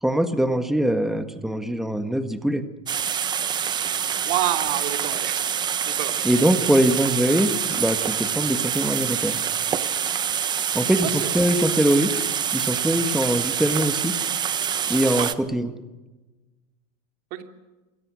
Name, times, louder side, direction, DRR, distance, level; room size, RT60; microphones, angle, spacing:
voice 1, 0.0-2.6 6.2-9.3 10.7-12.1 12.5-14.1 14.9-15.7, right 1 dB, ahead, 8 dB, 1.7 m, -22 dB
sound 1, 2.9-15.3, right 8 dB, 25° right, 1.1 m, -26 dB
voice 2, 4.2-5.4 6.0-6.1 11.1-11.3 15.1-15.3 17.3-17.4, right 14 dB, 50° right, 5 dB, 3.1 m, -27 dB
28.0 x 23.0 x 6.4 m, 1.1 s
supercardioid pair, 140°, 19 cm